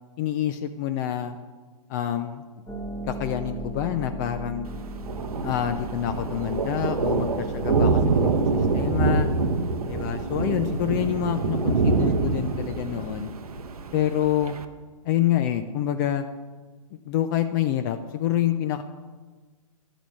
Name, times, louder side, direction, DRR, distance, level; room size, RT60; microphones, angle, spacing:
voice 1, 0.2-1.4 1.9-2.4 3.1-4.7 5.4-9.3 9.8-13.3 13.9-14.6 15.0-16.3 16.9-18.8, left 11 dB, 30° left, 8 dB, 0.4 m, -27 dB
Harp, 2.7-13.2, right 1 dB, 10° left, 1.2 m, -40 dB
Thunder, 4.7-14.6, right 4 dB, 80° right, 0.8 m, -25 dB
10.5 x 5.0 x 7.3 m, 1.4 s
hypercardioid pair, 130°, 19 cm